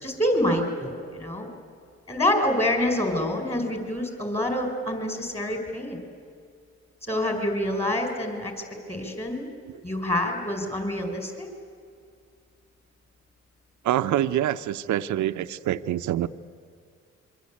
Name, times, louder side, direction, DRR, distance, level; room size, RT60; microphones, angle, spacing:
voice 1, 0.0-1.5 2.1-6.0 7.1-8.5 8.9-9.5 9.8-11.5, left 1 dB, 20° left, 3 dB, 5.2 m, -26 dB
voice 2, 13.8-16.3, right 12 dB, 75° right, 10 dB, 0.9 m, -26 dB
28.0 x 23.5 x 8.6 m, 2.3 s
cardioid pair, 90°, 30 cm